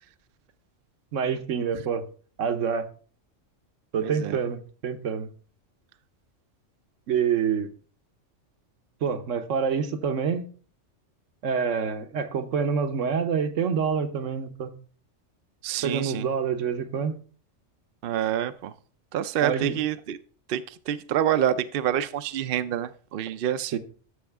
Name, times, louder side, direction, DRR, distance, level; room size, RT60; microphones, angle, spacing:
voice 1, 1.1-2.0 2.4-2.9 3.9-5.3 7.1-7.7 9.0-10.5 11.4-14.7 15.8-17.2 19.4-19.8 23.7-23.8, right 6 dB, 80° right, 1.2 m, -27 dB
voice 2, 4.0-4.4 15.6-16.3 18.0-18.7 19.1-20.2 20.5-23.8, right 10 dB, 60° right, 0.6 m, -27 dB
13.0 x 6.3 x 3.5 m
omnidirectional pair, 1.3 m